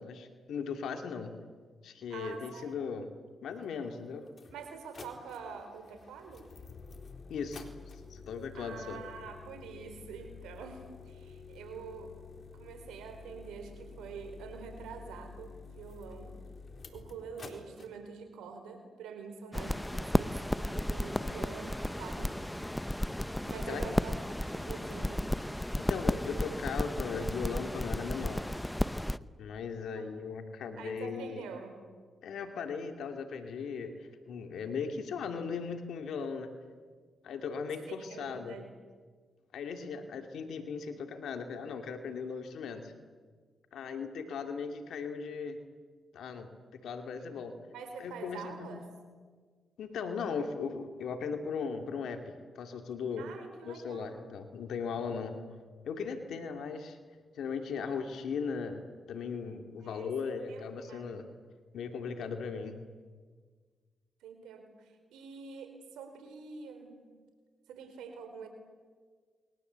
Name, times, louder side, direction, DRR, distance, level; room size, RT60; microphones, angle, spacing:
voice 1, 0.0-1.3 1.8-3.1 3.4-4.3 7.3-7.6 8.1-9.0 21.1-21.4 23.7-24.0 25.9-28.5 29.4-31.4 32.2-36.5 37.2-38.6 39.5-42.9 43.7-45.6 46.1-46.5 46.8-47.6 48.0-48.9 49.8-53.3 53.6-55.4 55.8-57.0 57.3-58.8 59.1-61.3 61.7-62.8, left 5 dB, 80° left, 6 dB, 2.6 m, -38 dB
voice 2, 2.1-2.7 4.5-6.5 8.5-12.1 12.5-16.4 16.9-22.6 23.4-24.2 24.5-25.3 29.9-30.0 30.8-31.7 37.9-38.7 39.8-40.0 47.2-47.4 47.7-48.8 53.2-54.1 59.8-61.1 64.2-67.0 67.7-68.5, right 5 dB, 90° right, 6 dB, 4.5 m, -46 dB
sound 1, 3.6-3.7 4.3-17.9, left 4 dB, 50° left, 3.9 m, -50 dB
sound 2, 19.5-29.2, left 1 dB, 10° left, 0.9 m, -33 dB
29.0 x 22.5 x 8.2 m, 1.5 s
supercardioid pair, 55°, 0 cm